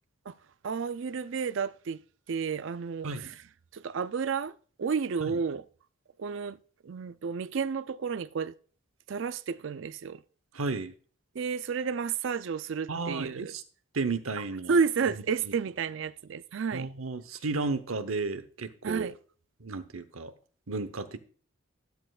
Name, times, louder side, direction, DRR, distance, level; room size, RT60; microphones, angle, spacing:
voice 1, 0.6-2.0 2.3-3.3 3.7-5.6 6.2-6.6 6.8-8.6 9.1-10.2 11.3-13.5 14.7-16.9 18.8-19.1, right 5 dB, 65° right, 0.4 m, -31 dB
voice 2, 10.5-10.9 12.9-13.6 13.9-14.8 15.4-15.5 16.7-19.1 19.6-20.3 20.7-21.2, right 3 dB, 85° right, 0.9 m, -33 dB
13.0 x 10.0 x 2.4 m
head